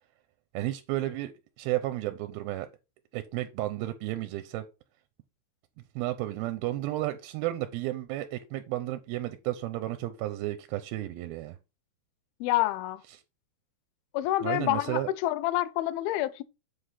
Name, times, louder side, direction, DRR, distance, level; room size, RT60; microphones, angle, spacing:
voice 1, 0.5-2.7 3.1-4.7 6.0-11.6 13.1-13.2 14.4-15.1, right 15 dB, 85° right, 2.4 m, -32 dB
voice 2, 12.4-13.0 14.1-16.4, left 15 dB, 80° left, 2.3 m, -28 dB
7.7 x 3.4 x 5.6 m
omnidirectional pair, 4.4 m